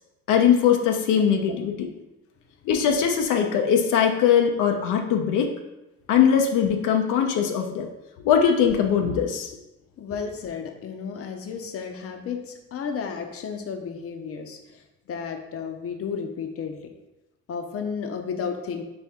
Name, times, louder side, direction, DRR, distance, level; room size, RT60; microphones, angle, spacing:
voice 1, 0.3-1.9 2.7-5.5 6.1-7.9 8.2-9.5, left 8 dB, 85° left, 3 dB, 0.6 m, -21 dB
voice 2, 10.0-14.8 15.1-16.8 17.5-18.8, left 6 dB, 50° left, 5 dB, 0.6 m, -33 dB
4.3 x 3.4 x 3.6 m, 0.96 s
cardioid pair, 90°, 30 cm